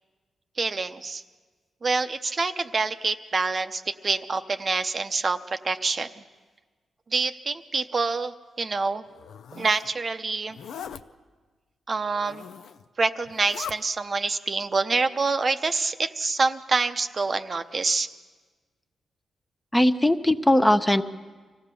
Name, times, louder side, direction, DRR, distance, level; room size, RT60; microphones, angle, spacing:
voice 1, 0.6-1.2 1.8-6.1 7.1-9.0 9.5-10.6 11.9-12.4 13.0-18.1, right 4 dB, 40° right, 9 dB, 0.7 m, -26 dB
Zipper (clothing), 9.1-9.9 10.5-11.0 12.1-12.8 13.2-13.8, left 8 dB, 90° left, 0.6 m, -40 dB
voice 2, 19.7-21.0, left 1 dB, 10° left, 8 dB, 0.7 m, -19 dB
25.0 x 16.0 x 6.9 m, 1.4 s
cardioid pair, 95°, 0 cm